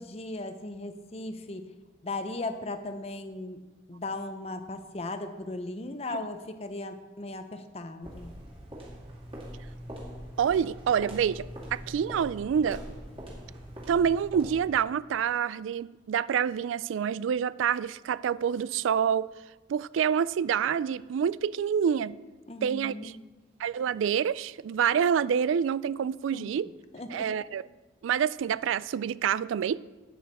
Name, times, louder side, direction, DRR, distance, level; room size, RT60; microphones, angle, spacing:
voice 1, 0.0-1.7 2.0-3.6 3.9-8.3 22.5-23.2 26.3-26.5 26.9-27.3, left 2 dB, 30° left, 0.7 m, -37 dB
sound 1, 8.0-14.8, equal, 30° right, 2.4 m, -43 dB
voice 2, 10.4-12.8 13.9-19.3 19.7-22.2 22.6-23.1 23.6-26.7 27.1-27.6 28.0-29.8, right 8 dB, 90° right, 0.3 m, -27 dB
11.5 x 9.3 x 4.2 m
head